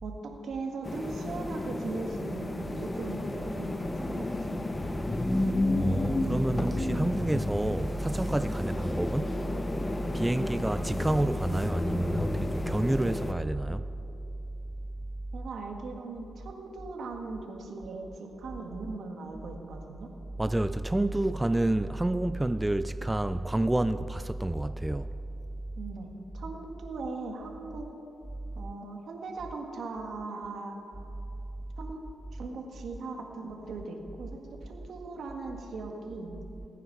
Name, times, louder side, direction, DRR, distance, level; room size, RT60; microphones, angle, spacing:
voice 1, 0.0-5.0 15.3-20.1 25.8-26.1 26.3-27.9 28.5-30.8 31.8-32.0 32.3-36.4, right 3 dB, 70° right, 1.8 m, -39 dB
sound 1, 0.8-13.3, left 2 dB, 20° left, 0.8 m, -32 dB
voice 2, 5.8-9.4 10.1-13.9 20.4-25.1, right 1 dB, 10° right, 0.3 m, -29 dB
20.5 x 9.3 x 4.7 m
cardioid pair, 75°, 0 cm